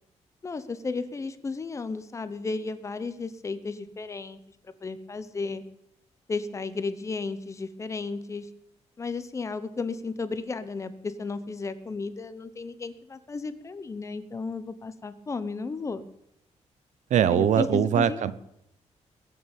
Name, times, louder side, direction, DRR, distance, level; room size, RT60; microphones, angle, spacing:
voice 1, 0.4-4.4 4.6-5.6 6.3-8.5 9.0-16.1 17.2-18.3, left 4 dB, 25° left, 12 dB, 1.0 m, -34 dB
voice 2, 17.1-18.3, right 9 dB, 80° right, 15 dB, 1.0 m, -22 dB
21.0 x 7.2 x 8.7 m, 0.78 s
wide cardioid pair, 180°, 12 cm